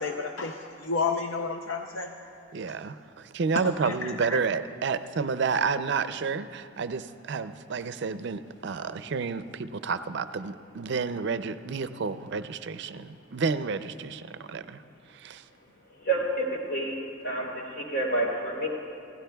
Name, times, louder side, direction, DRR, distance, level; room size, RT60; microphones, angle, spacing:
voice 1, 0.0-2.1 3.6-4.4, left 4 dB, 80° left, 4 dB, 0.6 m, -31 dB
voice 2, 2.5-14.8 15.1-15.4, right 5 dB, 60° right, 12 dB, 0.5 m, -30 dB
voice 3, 16.0-18.7, right 2 dB, 65° left, -2 dB, 3.3 m, -29 dB
27.5 x 16.5 x 2.3 m, 2.6 s
head